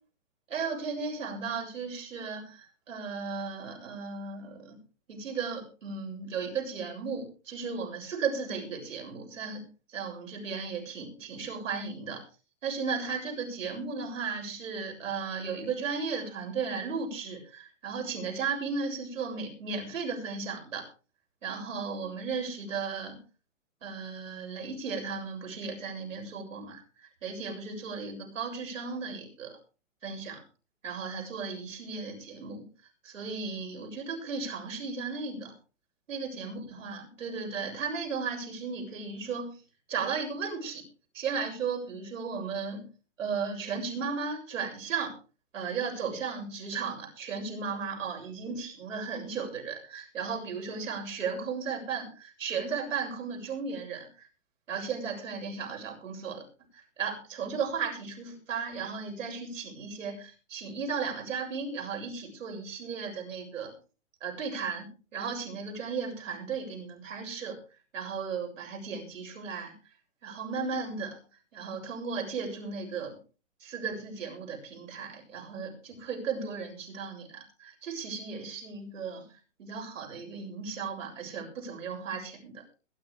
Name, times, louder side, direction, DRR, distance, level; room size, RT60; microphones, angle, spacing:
voice 1, 0.5-4.8 5.1-12.2 12.6-20.9 21.4-23.2 23.8-29.6 30.0-30.4 30.8-32.7 33.0-35.5 36.1-39.6 39.9-40.8 41.1-42.9 43.2-45.2 45.5-54.3 54.7-56.4 57.0-63.7 64.2-67.6 67.9-69.7 70.2-71.2 71.5-73.2 73.6-79.2 79.6-82.6, right 5 dB, 80° right, 2 dB, 7.4 m, -35 dB
21.5 x 11.0 x 3.5 m, 0.35 s
hypercardioid pair, 135°, 38 cm